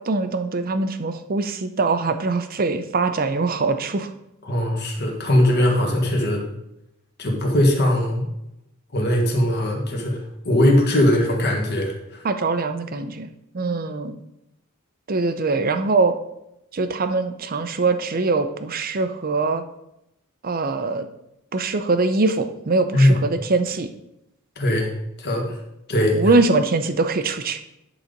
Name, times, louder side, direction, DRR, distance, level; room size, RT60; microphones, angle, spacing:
voice 1, 0.0-4.1 12.2-14.2 15.1-16.1 16.7-19.6 20.4-21.1 21.5-23.9 26.1-27.6, right 3 dB, 45° right, 9 dB, 0.6 m, -22 dB
voice 2, 4.4-6.5 7.2-8.3 8.9-12.2 22.9-23.2 24.5-24.9 25.2-25.6 25.9-26.2, left 1 dB, 50° left, 0 dB, 1.7 m, -20 dB
10.0 x 4.0 x 5.2 m, 0.85 s
head